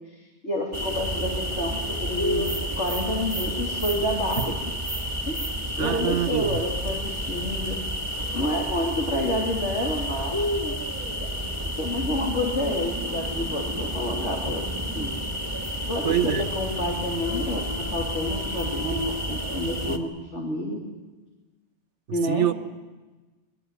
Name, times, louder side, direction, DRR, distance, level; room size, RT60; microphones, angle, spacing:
voice 1, 0.1-2.4 2.8-4.5 5.3-7.8 8.3-10.7 11.2-11.3 11.6-15.1 15.9-20.8 22.1-22.5, left 1 dB, 70° left, -1 dB, 3.5 m, -29 dB
sound 1, 0.7-20.0, equal, 25° right, 1.9 m, -30 dB
voice 2, 5.8-6.6 16.0-16.5 22.3-22.5, right 11 dB, 70° right, 12 dB, 1.3 m, -25 dB
27.0 x 21.0 x 8.3 m, 1.2 s
omnidirectional pair, 1.2 m